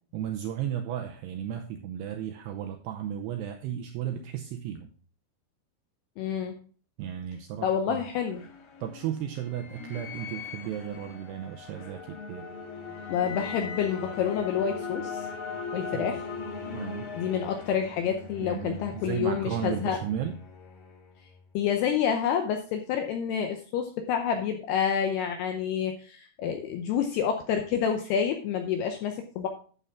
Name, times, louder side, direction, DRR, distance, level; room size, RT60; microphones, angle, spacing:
voice 1, 0.1-4.9 7.0-8.1 8.8-12.5 15.9-16.1 16.7-17.1 18.4-20.4, right 10 dB, 85° right, 5 dB, 2.4 m, -34 dB
voice 2, 6.2-6.6 7.6-8.4 13.1-15.3 15.7-16.3 17.2-20.0 21.5-29.5, left 8 dB, 80° left, 5 dB, 2.4 m, -28 dB
sound 1, 7.8-21.4, left 5 dB, 60° left, 2.1 m, -40 dB
11.0 x 6.9 x 3.5 m, 0.41 s
omnidirectional pair, 5.6 m